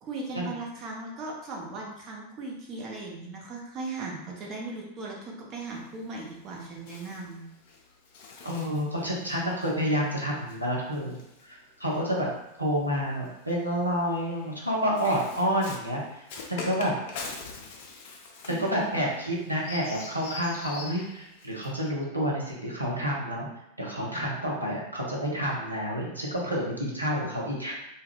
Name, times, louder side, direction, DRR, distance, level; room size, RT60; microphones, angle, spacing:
voice 1, 0.0-7.4 18.5-19.0, right 3 dB, 30° right, -2 dB, 0.8 m, -38 dB
Bird, 5.6-12.2 13.1-21.9, left 3 dB, 50° left, 0.4 m, -44 dB
voice 2, 8.4-11.2 11.4-12.3 12.6-16.2 16.5-16.9 18.4-23.5 23.8-27.7, equal, 90° right, -4 dB, 0.7 m, -29 dB
2.3 x 2.2 x 3.3 m, 0.83 s
figure-of-eight pair, 90°, 0 cm